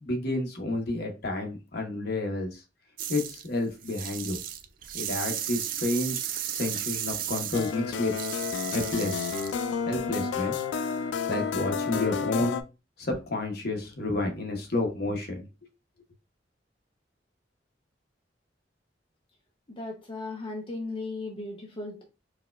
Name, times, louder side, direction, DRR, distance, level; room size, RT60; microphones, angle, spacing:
voice 1, 0.0-2.6 3.1-4.4 4.9-8.1 8.7-9.3 9.9-10.6 11.3-12.6 13.0-15.5, left 2 dB, 60° left, 3 dB, 0.9 m, -30 dB
sound 1, 3.0-3.5 3.8-9.6, right 11 dB, 50° right, 0.3 m, -34 dB
sound 2, 7.5-12.6, left 6 dB, 80° left, 0.3 m, -31 dB
voice 2, 19.7-22.0, left 2 dB, 30° left, 0 dB, 0.6 m, -36 dB
4.6 x 2.2 x 2.2 m, 0.29 s
head